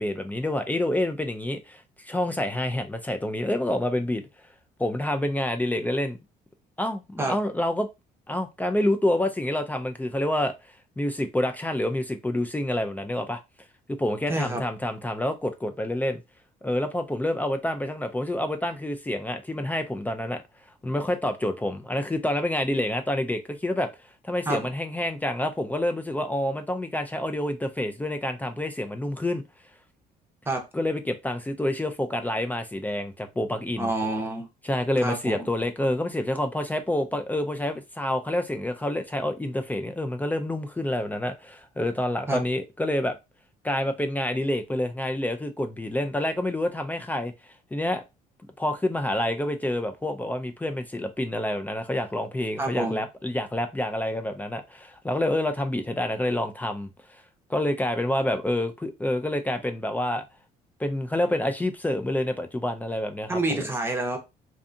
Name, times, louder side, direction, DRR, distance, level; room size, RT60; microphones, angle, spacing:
voice 1, 0.0-4.2 4.8-6.2 6.8-7.9 8.3-10.5 11.0-13.4 13.9-16.2 16.6-20.4 20.8-23.9 24.2-29.4 30.7-33.9 34.6-43.2 43.6-47.3 47.7-48.0 48.6-57.2 57.5-60.2 60.8-63.6, left 1 dB, 10° left, 0.3 m, -28 dB
voice 2, 14.3-14.6 24.5-24.6 30.5-30.6 33.8-34.5 35.0-35.4 42.3-42.4 52.6-53.0 63.3-64.2, right 2 dB, 15° right, 0.7 m, -27 dB
2.6 x 2.3 x 2.5 m
cardioid pair, 110°, 17 cm